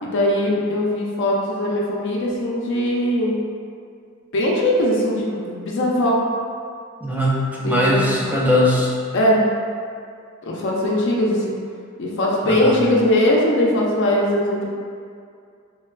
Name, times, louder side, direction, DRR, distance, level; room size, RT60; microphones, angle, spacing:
voice 1, 0.0-3.4 4.3-6.2 7.6-8.0 9.1-9.4 10.4-11.5 12.0-14.6, left 1 dB, 60° left, -3 dB, 0.5 m, -20 dB
voice 2, 7.0-8.9 12.4-12.8, left 1 dB, 10° right, -5 dB, 0.3 m, -20 dB
3.2 x 2.2 x 2.2 m, 2.3 s
head